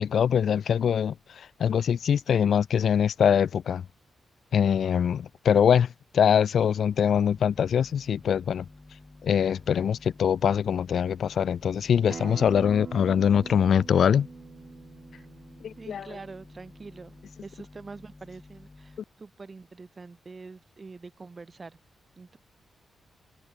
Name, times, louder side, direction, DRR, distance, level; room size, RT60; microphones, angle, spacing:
voice 1, 0.0-3.8 4.5-5.9 6.1-8.6 9.2-14.3 15.6-16.1, left 8 dB, 70° left, 0.4 m, -23 dB
sound 1, 7.1-19.0, left 2 dB, 25° left, 7.6 m, -51 dB
Acoustic guitar, 12.1-17.3, right 6 dB, 50° right, 1.0 m, -44 dB
voice 2, 15.8-17.1 17.4-21.8 22.2-22.4, right 4 dB, 35° right, 3.1 m, -45 dB
cardioid pair, 85°, 0 cm